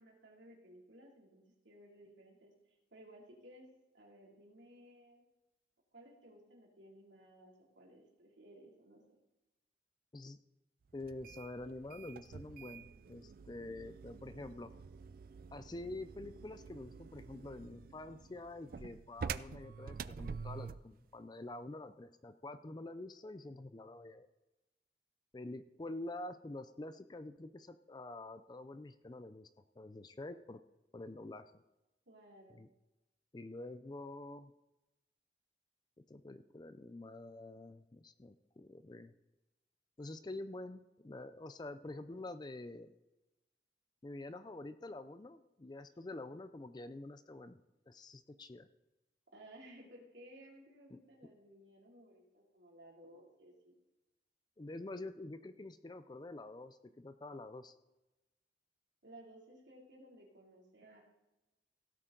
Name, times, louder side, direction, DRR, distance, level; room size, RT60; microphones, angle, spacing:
voice 1, 0.0-3.7 3.9-5.2 5.9-9.0 32.1-32.6 49.3-53.7 59.0-61.0, right 1 dB, 70° right, -2 dB, 3.0 m, -58 dB
voice 2, 10.9-14.7 15.5-24.3 25.3-29.5 29.8-30.6 30.9-31.5 32.6-32.7 33.3-34.5 36.1-39.1 40.0-42.9 44.0-47.6 47.9-48.7 50.9-51.0 54.6-57.8, left 2 dB, 20° left, 11 dB, 0.4 m, -47 dB
sound 1, 11.0-20.9, right 6 dB, 50° right, 0.3 m, -47 dB
16.5 x 8.3 x 3.9 m, 1.0 s
head